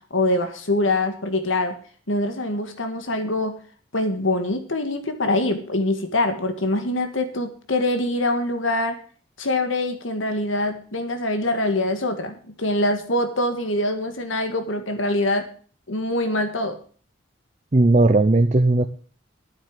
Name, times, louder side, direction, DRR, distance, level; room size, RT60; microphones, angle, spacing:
voice 1, 0.1-1.7 2.1-3.6 3.9-9.0 9.4-15.4 15.9-16.8, left 1 dB, 90° left, 7 dB, 1.8 m, -24 dB
voice 2, 17.7-18.8, right 2 dB, 35° right, 8 dB, 0.6 m, -16 dB
9.7 x 8.9 x 7.4 m, 0.44 s
head